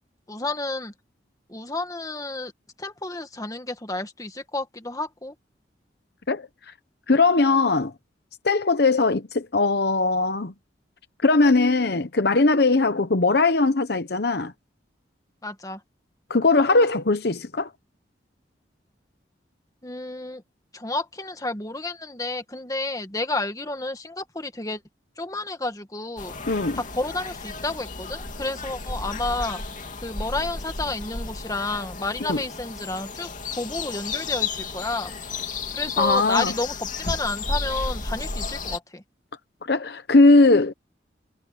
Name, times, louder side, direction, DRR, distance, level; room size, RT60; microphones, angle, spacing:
voice 1, 0.3-0.9 1.5-2.5 2.8-5.3 15.4-15.8 19.8-20.4 20.7-24.8 25.2-26.3 26.7-29.6 30.0-35.1 35.7-39.0, left 2 dB, 20° left, 1.8 m, -31 dB
voice 2, 7.1-7.9 8.4-10.5 11.2-14.5 16.3-17.7 26.5-26.8 32.3-32.4 36.0-36.5 39.6-40.7, left 3 dB, 60° left, 0.9 m, -20 dB
sound 1, 26.2-38.8, left 4 dB, 45° left, 2.8 m, -33 dB
head